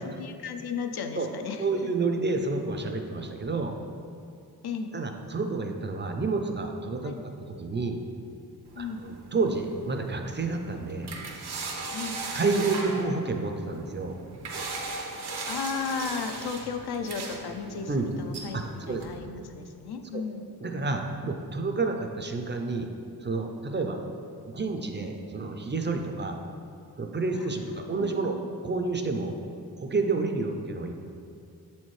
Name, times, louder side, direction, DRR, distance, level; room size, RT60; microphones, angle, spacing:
voice 1, 0.0-1.7 4.6-4.9 7.0-7.2 8.8-9.0 11.9-12.2 15.4-20.5 27.3-28.5, left 5 dB, 80° left, 6 dB, 0.5 m, -35 dB
voice 2, 1.6-3.8 4.9-8.0 8.8-11.1 12.3-14.2 17.9-18.1 18.5-19.0 20.1-20.2 20.6-22.9 23.2-24.0 24.4-26.4 27.0-28.4 28.6-29.3 29.8-30.9, right 3 dB, 30° right, 4 dB, 0.4 m, -29 dB
sound 1, 8.7-19.2, right 3 dB, 85° right, 0.8 m, -38 dB
7.0 x 4.3 x 3.1 m, 2.5 s
wide cardioid pair, 115°, 38 cm